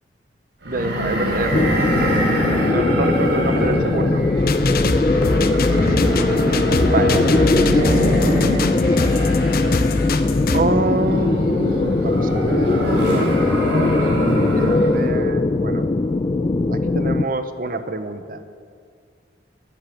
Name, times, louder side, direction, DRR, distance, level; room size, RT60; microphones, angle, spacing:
voice 1, 0.6-2.0 2.7-4.3 6.9-8.0 10.5-13.4 14.4-15.9 16.7-18.4, right 2 dB, 55° right, 10 dB, 0.9 m, -26 dB
sound 1, 0.6-15.1, equal, 80° right, 4.0 m, -25 dB
sound 2, 1.5-17.3, left 2 dB, 25° left, 0.3 m, -20 dB
sound 3, 4.4-10.6, left 3 dB, 55° left, 0.8 m, -24 dB
14.0 x 8.6 x 8.5 m, 2.2 s
head